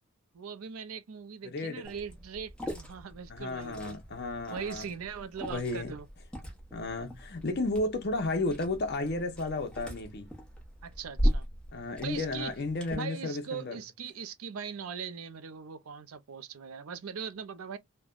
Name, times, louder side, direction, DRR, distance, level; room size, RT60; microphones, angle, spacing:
voice 1, 0.3-4.0 4.5-6.1 10.8-11.5 12.0-12.5 12.9-17.8, right 6 dB, 85° right, 0.5 m, -40 dB
voice 2, 1.4-1.8 3.3-4.8 5.5-6.0 6.7-10.3 11.7-13.8, left 2 dB, 50° left, 0.7 m, -33 dB
Liquid, 1.8-12.9, equal, 5° left, 0.9 m, -37 dB
3.2 x 2.2 x 2.3 m
head